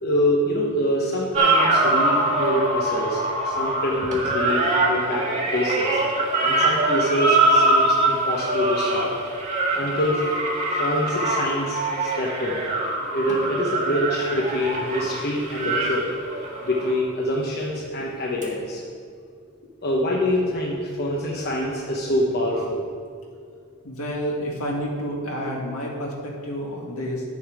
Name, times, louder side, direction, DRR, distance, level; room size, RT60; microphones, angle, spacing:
voice 1, 0.0-3.2 3.4-6.0 6.4-9.2 9.7-10.2 10.7-12.6 13.1-16.1 16.6-18.8 19.8-22.8, equal, 45° left, -3 dB, 1.0 m, -25 dB
sound 1, 1.3-16.9 18.4-18.5, right 2 dB, 35° right, 1.5 m, -23 dB
voice 2, 23.8-27.2, equal, 70° left, -2 dB, 1.9 m, -29 dB
10.5 x 7.1 x 4.8 m, 2.3 s
head